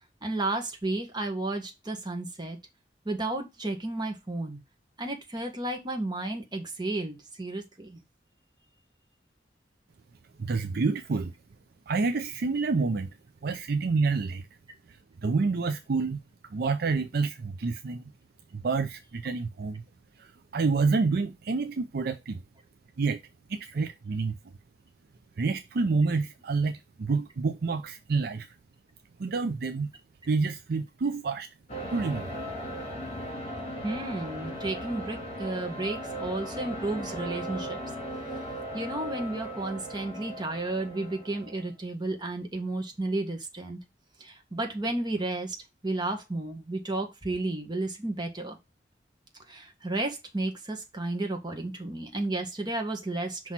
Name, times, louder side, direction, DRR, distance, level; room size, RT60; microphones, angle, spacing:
voice 1, 0.2-2.6 3.0-4.6 5.0-8.0 33.8-37.8 38.7-43.8 44.2-45.6 45.8-48.6 49.5-53.5, right 2 dB, 25° right, 1.5 m, -32 dB
voice 2, 10.4-11.3 11.9-13.2 13.4-14.4 14.9-16.2 16.5-18.0 18.5-19.8 20.2-22.4 23.0-23.2 23.5-24.4 25.4-28.5 29.2-29.9 30.3-31.5 31.9-32.3, right 4 dB, 60° right, 0.5 m, -28 dB
sound 1, 31.7-41.7, equal, 35° left, 2.4 m, -37 dB
5.9 x 3.1 x 5.6 m
head